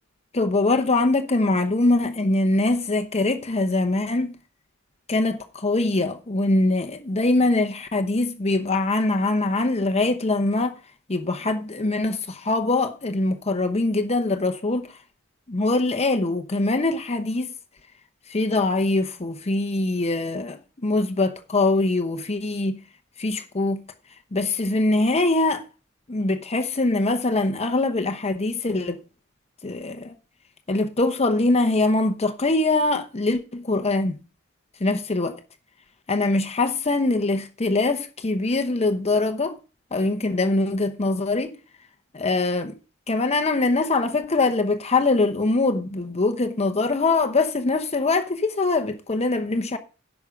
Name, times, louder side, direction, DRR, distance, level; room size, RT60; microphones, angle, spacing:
voice 1, 0.3-4.4 5.1-10.7 11.1-15.0 15.5-17.5 18.3-22.8 23.2-23.8 24.3-25.6 26.1-29.0 29.6-30.1 30.7-34.2 34.8-35.4 36.1-39.6 39.9-41.6 42.1-42.7 43.1-49.8, left 2 dB, 30° left, 0.9 m, -23 dB
11.0 x 7.2 x 5.1 m
head